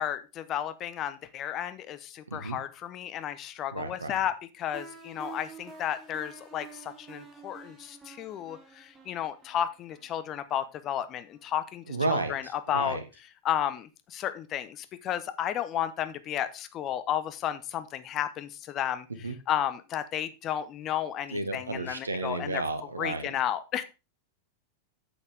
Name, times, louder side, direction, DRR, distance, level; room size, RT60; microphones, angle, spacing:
voice 1, 0.0-13.0 13.4-19.1 19.5-22.6 23.0-23.8, left 10 dB, 35° left, 12 dB, 1.0 m, -33 dB
voice 2, 2.3-2.6 3.7-4.2 11.9-13.0 19.2-19.4 21.3-23.3, right 3 dB, 80° right, 9 dB, 1.5 m, -32 dB
sound 1, 4.7-11.5, right 5 dB, 15° right, 3.4 m, -49 dB
8.5 x 8.4 x 3.5 m, 0.28 s
figure-of-eight pair, 90°, 0 cm